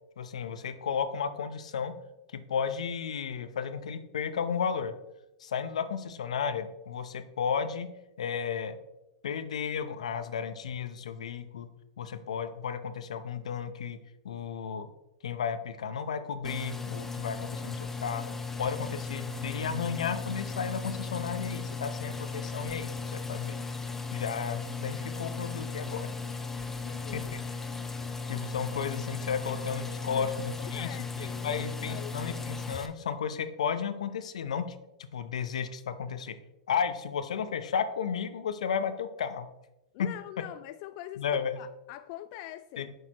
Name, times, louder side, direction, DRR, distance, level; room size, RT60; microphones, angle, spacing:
voice 1, 0.2-1.9 2.3-4.9 5.4-7.9 8.2-8.8 9.2-11.7 12.0-14.0 14.2-14.9 15.2-23.6 24.1-26.1 27.1-27.4 28.3-30.9 31.1-36.4 36.7-39.5 40.0-40.1 41.2-41.6 42.8-42.9, left 7 dB, 85° left, 0.7 m, -33 dB
sound 1, 16.4-32.9, left 4 dB, 10° left, 0.8 m, -36 dB
voice 2, 26.8-27.3 30.1-30.3 30.6-32.2 39.9-42.9, left 14 dB, 50° left, 0.3 m, -44 dB
9.1 x 6.4 x 3.0 m
hypercardioid pair, 120°, 3 cm